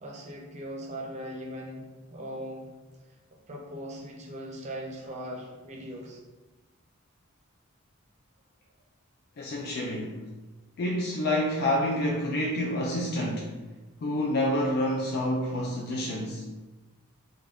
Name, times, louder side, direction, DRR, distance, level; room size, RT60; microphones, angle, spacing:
voice 1, 0.0-2.7 3.5-6.2, equal, 35° right, -1 dB, 0.5 m, -39 dB
voice 2, 9.4-10.2 10.8-13.5 14.0-16.5, left 1 dB, 50° left, -2 dB, 0.3 m, -28 dB
2.4 x 2.2 x 3.3 m, 1.2 s
head